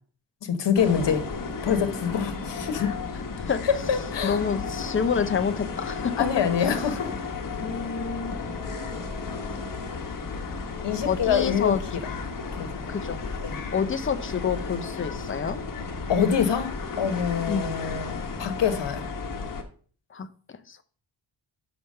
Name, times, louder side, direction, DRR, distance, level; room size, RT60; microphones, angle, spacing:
voice 1, 0.4-1.3 1.6-3.0 3.6-4.4 6.2-7.1 10.8-11.8 12.5-13.0 13.4-13.6 16.1-19.1, left 7 dB, 65° left, 8 dB, 1.2 m, -25 dB
sound 1, 0.7-19.6, left 4 dB, 45° left, 1.1 m, -34 dB
voice 2, 4.2-6.1 6.6-6.8 7.6-8.4 11.0-11.8 12.9-13.2 13.7-15.6 17.5-17.8 20.1-20.3 20.7-20.8, left 6 dB, 25° left, 9 dB, 0.6 m, -28 dB
5.9 x 5.1 x 6.5 m, 0.44 s
wide cardioid pair, 175°, 46 cm